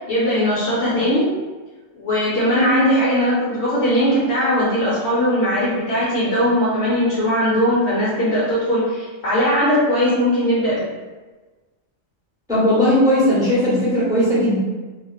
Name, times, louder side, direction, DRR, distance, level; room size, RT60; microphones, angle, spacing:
voice 1, 0.1-1.3 2.0-10.8, equal, 60° left, -8 dB, 0.9 m, -19 dB
voice 2, 12.5-14.6, left 1 dB, 5° right, -9 dB, 0.9 m, -17 dB
2.8 x 2.5 x 2.3 m, 1.2 s
omnidirectional pair, 1.4 m